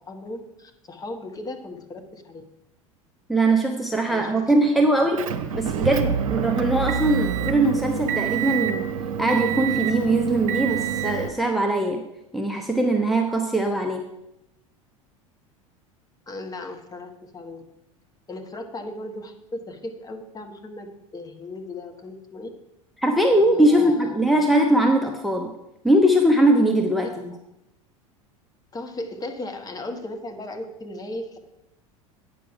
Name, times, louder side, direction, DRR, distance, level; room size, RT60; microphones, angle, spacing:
voice 1, 0.0-2.4 4.1-4.5 4.8-5.1 16.3-17.7 18.3-22.5 23.3-24.4 28.7-31.4, left 2 dB, 20° left, 5 dB, 1.2 m, -37 dB
voice 2, 3.3-5.3 5.5-8.9 9.2-12.0 12.3-14.0 23.0-25.5 25.8-27.1, right 1 dB, ahead, 4 dB, 0.8 m, -21 dB
Motor vehicle (road) / Engine, 5.2-11.3, right 8 dB, 70° right, 0.8 m, -26 dB
8.9 x 6.2 x 5.8 m, 0.88 s
figure-of-eight pair, 75°, 18 cm